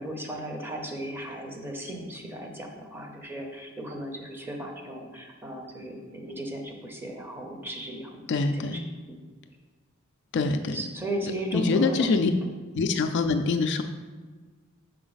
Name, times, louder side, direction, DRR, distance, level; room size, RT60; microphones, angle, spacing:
voice 1, 0.0-8.1 8.6-8.8 9.1-9.2 10.7-12.1 12.4-12.5, right 1 dB, 10° right, 1 dB, 0.7 m, -35 dB
voice 2, 8.3-8.8 10.3-10.8 11.2-12.3 12.7-13.8, left 4 dB, 55° left, 7 dB, 0.3 m, -25 dB
6.0 x 4.0 x 4.0 m, 1.4 s
head